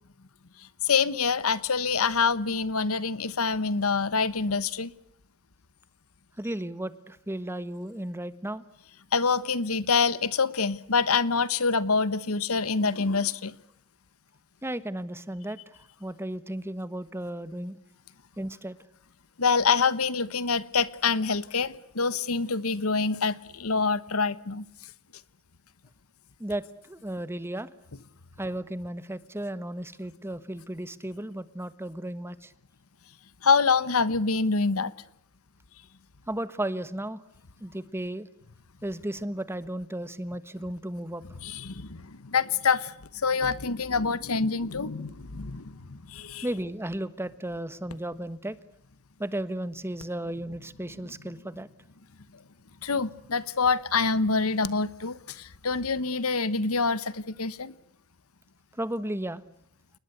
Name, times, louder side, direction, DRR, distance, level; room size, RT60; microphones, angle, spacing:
voice 1, 0.8-4.9 9.1-13.5 19.4-24.6 33.4-34.9 41.4-42.9 43.2-46.4 52.8-57.7, left 4 dB, 85° left, 1.2 m, -26 dB
voice 2, 6.4-8.6 14.6-15.6 16.0-17.8 18.4-18.8 26.4-27.7 28.4-32.5 36.3-37.2 37.6-38.3 38.8-41.2 46.4-48.6 49.2-51.7 58.8-59.4, right 1 dB, 10° right, 1.3 m, -34 dB
29.0 x 20.0 x 8.1 m
head